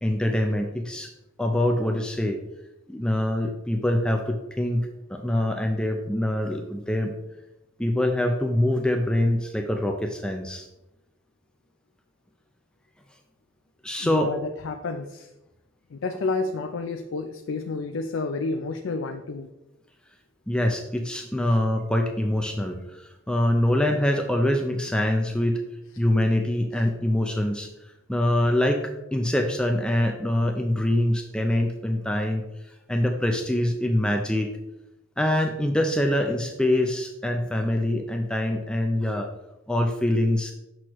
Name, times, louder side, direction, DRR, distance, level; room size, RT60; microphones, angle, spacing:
voice 1, 0.0-1.1 1.4-2.4 2.9-7.1 7.8-10.7 13.8-14.3 20.5-25.6 26.0-27.7 28.1-32.4 32.9-34.5 35.2-39.3 39.7-40.5, left 1 dB, 5° left, 3 dB, 0.4 m, -24 dB
voice 2, 14.0-15.3 15.9-19.5, left 3 dB, 65° left, 5 dB, 0.4 m, -30 dB
6.1 x 6.1 x 3.0 m, 0.94 s
head